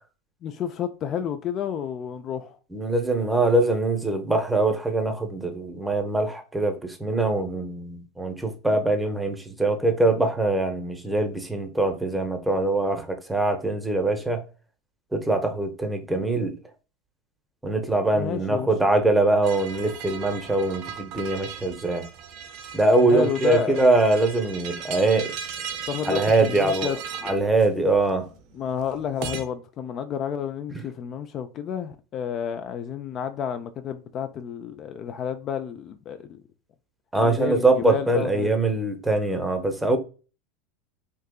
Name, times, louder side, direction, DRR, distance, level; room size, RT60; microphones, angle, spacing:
voice 1, 0.4-2.6 18.1-18.7 23.0-23.9 25.9-27.4 28.5-36.4 37.2-38.5, left 8 dB, 40° left, 0.3 m, -30 dB
voice 2, 2.7-14.4 15.1-16.6 17.6-22.1 22.7-25.3 26.1-26.9 27.2-28.3 37.1-40.0, right 2 dB, 5° right, 0.7 m, -23 dB
sound 1, 19.4-29.4, right 7 dB, 60° right, 0.6 m, -37 dB
3.5 x 2.8 x 2.2 m
hypercardioid pair, 95°, 0 cm